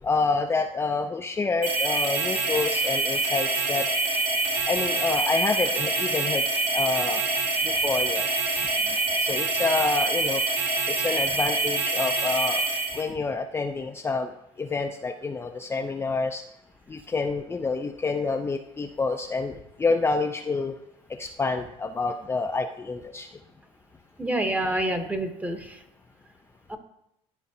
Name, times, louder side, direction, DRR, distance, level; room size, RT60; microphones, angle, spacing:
voice 1, 0.0-3.9 4.7-6.4 6.7-7.2 7.6-8.2 9.2-10.4 10.9-12.7 12.9-14.3 14.6-16.4 16.9-20.7 21.1-23.3, left 4 dB, 20° left, 3 dB, 0.5 m, -28 dB
sound 1, 1.6-13.0, right 3 dB, 65° right, 2.9 m, -26 dB
voice 2, 24.2-25.8 26.7-26.8, right 1 dB, 10° right, 7 dB, 1.0 m, -27 dB
13.0 x 4.5 x 2.7 m, 0.81 s
supercardioid pair, 95°, 13 cm